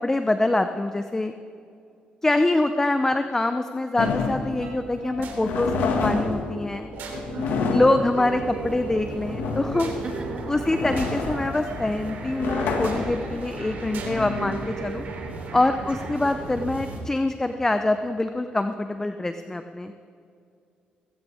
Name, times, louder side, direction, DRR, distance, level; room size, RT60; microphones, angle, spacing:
voice 1, 0.0-1.3 2.2-5.7 6.0-6.9 7.7-9.9 10.5-15.0 15.5-19.9, left 2 dB, 15° left, 8 dB, 0.7 m, -24 dB
sound 1, 4.0-15.3, left 4 dB, 80° left, 1.9 m, -29 dB
sound 2, 4.6-16.8, right 4 dB, 80° right, 3.1 m, -39 dB
voice 2, 7.3-7.9 10.0-10.1 16.0-16.2, right 4 dB, 40° right, -3 dB, 4.5 m, -38 dB
sound 3, 8.2-17.0, right 2 dB, 55° right, 3.7 m, -37 dB
20.0 x 16.5 x 3.6 m, 2.4 s
cardioid pair, 80°, 3 cm